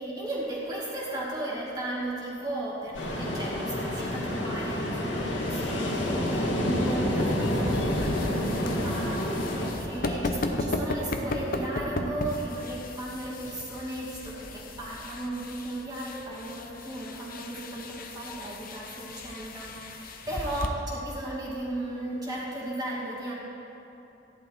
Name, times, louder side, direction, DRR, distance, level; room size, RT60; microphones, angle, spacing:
voice 1, 0.0-23.3, right 1 dB, 20° right, -6 dB, 2.3 m, -35 dB
Ocean, 2.9-9.7, left 1 dB, 85° left, 2.1 m, -28 dB
sound 1, 6.7-20.7, left 2 dB, 50° left, 0.8 m, -35 dB
14.0 x 11.0 x 4.6 m, 3.0 s
head